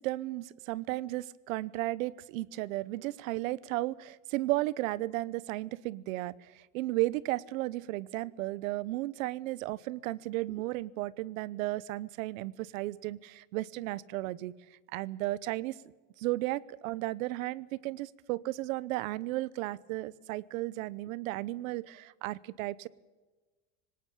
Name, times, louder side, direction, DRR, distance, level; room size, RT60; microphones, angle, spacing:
voice 1, 0.0-14.5 14.9-15.8 16.2-22.9, right 18 dB, 85° right, 22 dB, 0.9 m, -34 dB
20.0 x 18.0 x 8.6 m, 1.3 s
supercardioid pair, 150°, 39 cm